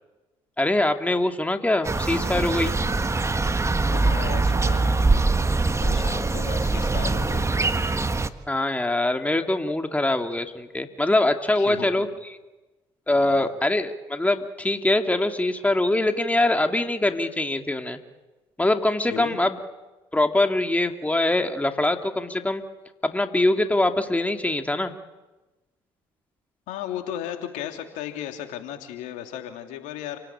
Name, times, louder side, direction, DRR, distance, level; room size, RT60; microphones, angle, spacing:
voice 1, 0.6-2.7 8.5-12.1 13.1-18.0 18.6-19.6 20.1-22.6 23.0-24.9, left 2 dB, 10° left, 6 dB, 2.5 m, -23 dB
sound 1, 1.8-8.3, right 3 dB, 20° right, 1.6 m, -23 dB
voice 2, 3.8-5.3 5.8-7.6 11.6-12.0 13.1-13.5 19.0-19.4 26.7-30.2, left 11 dB, 75° left, 5 dB, 3.0 m, -35 dB
29.0 x 18.5 x 8.7 m, 1.1 s
hypercardioid pair, 55°, 13 cm